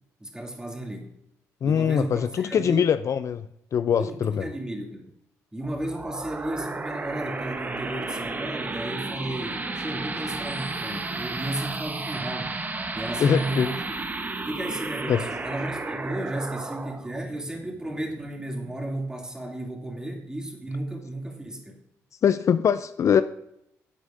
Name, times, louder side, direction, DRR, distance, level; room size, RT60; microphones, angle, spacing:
voice 1, 0.2-1.2 1.6-2.9 4.0-5.1 5.5-12.6 12.9-13.7 14.5-21.8, right 1 dB, 10° right, 2.5 m, -33 dB
voice 2, 1.6-3.4 3.7-4.4 13.2-13.7 15.1-15.2 22.2-23.2, left 8 dB, 50° left, 0.4 m, -22 dB
sound 1, 5.6-18.7, right 3 dB, 25° right, 1.0 m, -33 dB
12.5 x 8.0 x 2.6 m
supercardioid pair, 70°, 6 cm